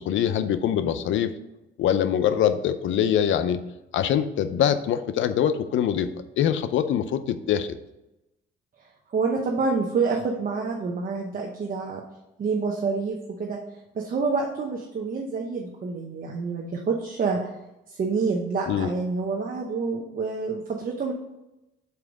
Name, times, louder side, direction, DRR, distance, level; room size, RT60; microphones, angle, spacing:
voice 1, 0.0-1.3 1.8-3.6 3.9-6.1 6.4-7.8 18.7-18.9, left 9 dB, 75° left, 12 dB, 0.6 m, -23 dB
voice 2, 9.1-12.0 12.4-13.6 13.9-17.5 17.9-21.1, right 4 dB, 45° right, 0 dB, 1.0 m, -27 dB
5.7 x 4.5 x 6.3 m, 0.95 s
cardioid pair, 90°, 20 cm